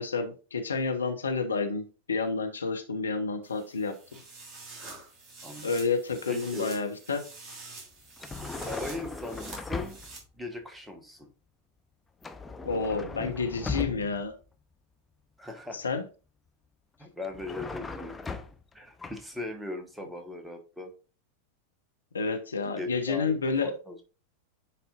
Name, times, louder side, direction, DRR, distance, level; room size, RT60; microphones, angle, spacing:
voice 1, 0.0-3.9 5.6-7.2 12.6-14.3 15.7-16.0 22.1-23.7, left 4 dB, 70° left, 1.0 m, -30 dB
sound 1, 3.4-10.2, right 3 dB, 25° right, 3.2 m, -46 dB
voice 2, 6.3-6.7 8.5-10.0 10.3-11.3 15.4-15.9 17.0-18.2 18.7-20.9 22.8-23.3 23.6-24.0, left 2 dB, 5° right, 1.3 m, -39 dB
sound 2, 8.2-10.2 12.2-14.3 17.2-18.7 19.0-19.2, left 4 dB, 10° left, 0.6 m, -38 dB
10.0 x 4.3 x 2.5 m
figure-of-eight pair, 90°, 0 cm